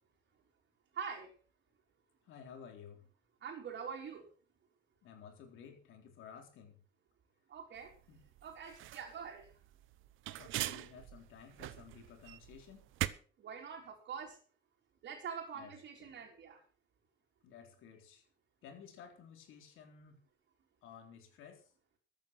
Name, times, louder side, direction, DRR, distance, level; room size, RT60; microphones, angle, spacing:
voice 1, 0.9-1.3 3.4-4.2 7.5-7.9 8.4-9.5 13.4-14.4 15.0-16.6, right 6 dB, 65° right, -3 dB, 4.1 m, -44 dB
voice 2, 2.3-3.1 5.0-6.8 8.1-8.2 10.4-12.9 15.5-15.7 16.0-16.2 17.4-18.2 18.6-20.2 20.8-21.7, left 7 dB, 85° left, 4 dB, 3.8 m, -54 dB
sound 1, 7.8-13.1, right 14 dB, 90° right, 0.9 m, -42 dB
14.0 x 9.1 x 6.1 m, 0.40 s
cardioid pair, 90°, 20 cm